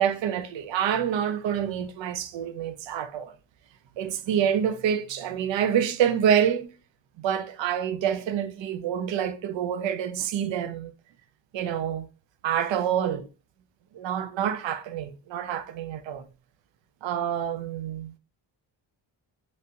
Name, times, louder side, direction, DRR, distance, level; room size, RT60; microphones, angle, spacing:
voice 1, 0.0-3.4 4.0-6.7 7.2-10.9 11.5-12.1 12.4-13.3 13.9-16.2 17.0-18.2, right 9 dB, 75° right, 0.6 m, -27 dB
3.2 x 2.6 x 2.8 m
cardioid pair, 90°, 45 cm